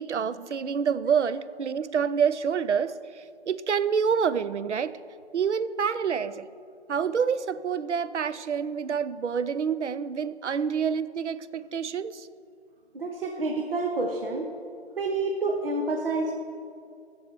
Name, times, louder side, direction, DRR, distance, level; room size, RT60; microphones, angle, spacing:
voice 1, 0.0-4.9 5.3-6.5 6.9-12.3, right 6 dB, 85° right, 14 dB, 0.5 m, -27 dB
voice 2, 12.9-14.5 15.0-16.3, right 2 dB, 55° right, 3 dB, 1.0 m, -28 dB
13.0 x 7.1 x 4.5 m, 2.3 s
figure-of-eight pair, 150°, 34 cm